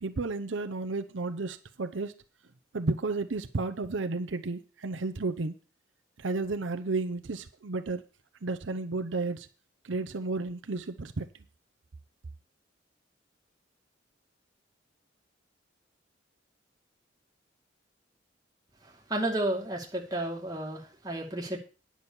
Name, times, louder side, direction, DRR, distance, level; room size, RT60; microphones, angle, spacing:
voice 1, 0.0-2.1 2.7-5.6 6.2-8.0 8.4-9.5 9.8-11.4, right 3 dB, 80° right, 0.7 m, -32 dB
voice 2, 18.8-21.6, right 1 dB, 20° right, 2.4 m, -32 dB
9.8 x 6.2 x 6.9 m
head